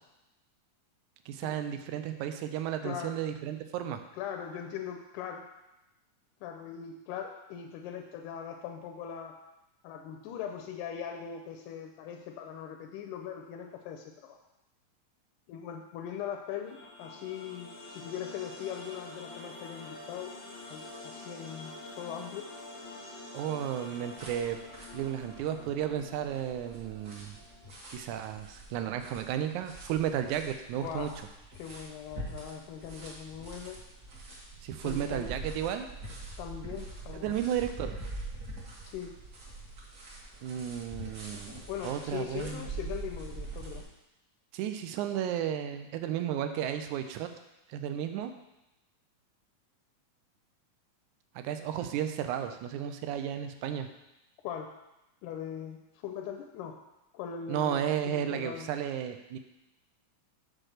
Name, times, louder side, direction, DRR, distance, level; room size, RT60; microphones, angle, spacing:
voice 1, 1.3-4.0 23.3-24.6 24.9-27.3 27.9-31.1 34.6-35.9 37.2-37.9 40.4-42.6 44.5-47.3 47.7-48.3 51.4-53.9 57.5-59.4, right 10 dB, 80° right, 8 dB, 2.0 m, -33 dB
voice 2, 2.8-3.2 4.2-5.4 6.4-9.4 9.8-14.4 15.5-20.3 20.7-22.5 30.8-31.1 31.6-33.8 34.8-35.3 36.4-37.4 38.9-39.1 41.7-43.9 54.4-54.7 55.2-56.8 57.1-58.7, left 8 dB, 85° left, 3 dB, 2.0 m, -40 dB
sound 1, 16.6-27.7, left 2 dB, 45° left, 0.7 m, -47 dB
sound 2, 24.2-43.8, right 2 dB, 40° right, 1.5 m, -44 dB
6.1 x 4.4 x 6.5 m, 0.93 s
omnidirectional pair, 3.6 m